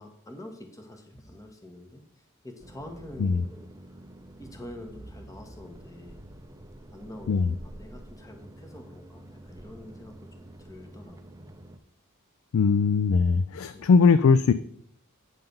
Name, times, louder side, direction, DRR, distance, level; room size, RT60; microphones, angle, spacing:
voice 1, 0.0-4.0 4.4-6.2 6.9-11.2 13.7-13.9, left 1 dB, 15° left, 4 dB, 1.1 m, -46 dB
sound 1, 2.6-11.8, right 1 dB, 15° right, 0.5 m, -47 dB
voice 2, 12.5-14.5, left 5 dB, 65° left, 13 dB, 0.4 m, -20 dB
9.1 x 3.8 x 6.8 m, 0.67 s
head